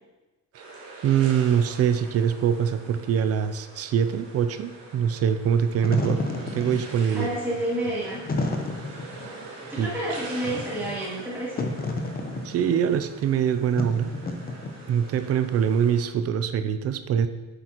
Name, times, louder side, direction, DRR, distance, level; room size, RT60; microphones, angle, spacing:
sound 1, 0.5-16.1, right 3 dB, 90° right, 2.6 m, -44 dB
voice 1, 1.0-6.2 6.5-7.3 9.8-9.9 12.4-14.1 14.9-17.3, right 8 dB, 50° right, 11 dB, 0.5 m, -23 dB
Wind / Fire, 5.6-15.1, left 2 dB, 30° left, 0.8 m, -32 dB
voice 2, 7.1-8.2 9.7-11.7, right 1 dB, 5° right, -10 dB, 2.8 m, -29 dB
8.8 x 7.8 x 3.0 m, 1.2 s
cardioid pair, 135°, 32 cm